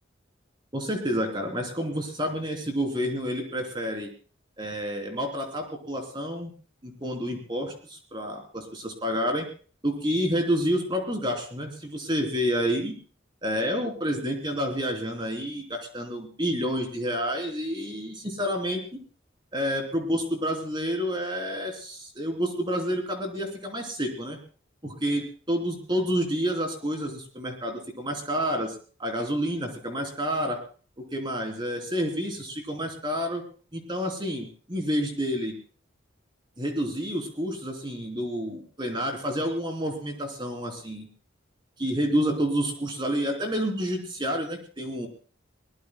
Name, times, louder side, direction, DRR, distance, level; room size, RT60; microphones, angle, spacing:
voice 1, 0.7-4.1 4.6-6.5 6.8-9.4 9.8-13.0 13.4-19.0 19.5-24.4 24.8-30.6 31.1-33.4 33.7-35.6 36.6-41.1 41.8-45.1, equal, 25° right, 3 dB, 3.3 m, -29 dB
22.5 x 19.0 x 2.2 m, 0.40 s
head